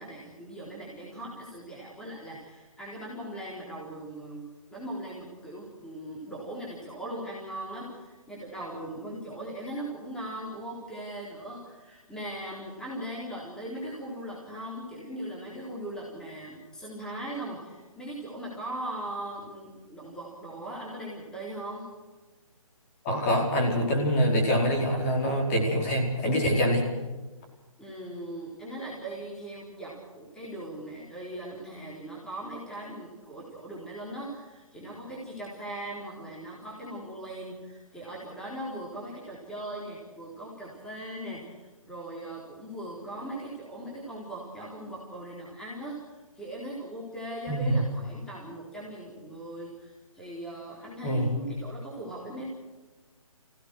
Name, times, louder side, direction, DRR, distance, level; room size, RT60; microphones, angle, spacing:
voice 1, 0.0-21.9 27.8-52.4, right 1 dB, 5° left, -6 dB, 3.9 m, -39 dB
voice 2, 23.0-26.8 47.5-47.8 51.0-51.4, equal, 25° left, 0 dB, 4.8 m, -25 dB
26.0 x 17.0 x 6.5 m, 1.2 s
hypercardioid pair, 160°, 18 cm